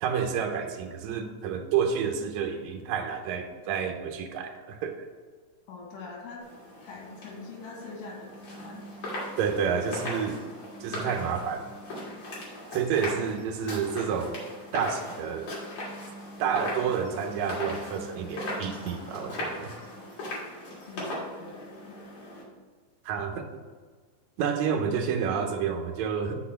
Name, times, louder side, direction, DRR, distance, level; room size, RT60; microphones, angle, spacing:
voice 1, 0.0-5.0 9.4-10.4 10.8-11.7 12.7-14.4 14.7-15.5 16.4-19.7 23.1-23.4 24.4-26.4, right 7 dB, 75° right, 4 dB, 1.9 m, -29 dB
voice 2, 5.7-6.4 6.9-8.9 20.9-21.9, left 3 dB, 80° left, -2 dB, 3.1 m, -43 dB
sound 1, 6.4-22.4, left 1 dB, 55° left, 2.9 m, -38 dB
6.3 x 4.2 x 5.8 m, 1.5 s
omnidirectional pair, 3.7 m